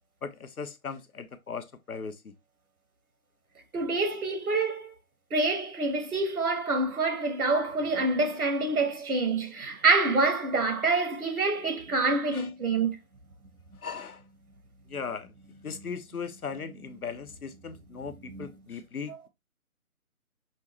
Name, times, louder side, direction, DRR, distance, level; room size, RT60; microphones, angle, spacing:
voice 1, 0.2-2.3 12.3-12.5 13.8-14.2 14.9-15.3 15.6-19.3, left 5 dB, 85° left, 0.9 m, -38 dB
voice 2, 3.7-4.9 5.3-13.0 18.3-18.5, right 3 dB, 85° right, 1.3 m, -26 dB
5.4 x 2.5 x 3.0 m
figure-of-eight pair, 150°, 43 cm